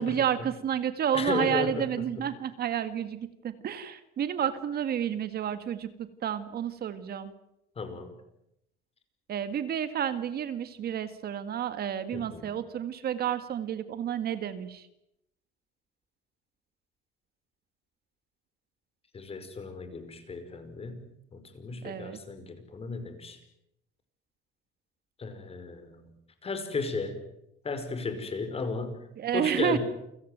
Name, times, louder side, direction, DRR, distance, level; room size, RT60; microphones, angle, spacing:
voice 1, 0.0-5.9 6.2-7.3 9.3-14.8 21.8-22.2 29.2-29.8, right 9 dB, 50° right, 11 dB, 1.9 m, -30 dB
voice 2, 1.1-2.2 7.7-8.1 12.1-12.5 19.1-23.4 25.2-26.1 26.4-27.2 27.6-29.0 29.3-29.8, left 3 dB, 30° left, 9 dB, 5.2 m, -35 dB
29.0 x 17.0 x 9.4 m, 0.83 s
cardioid pair, 120°, 21 cm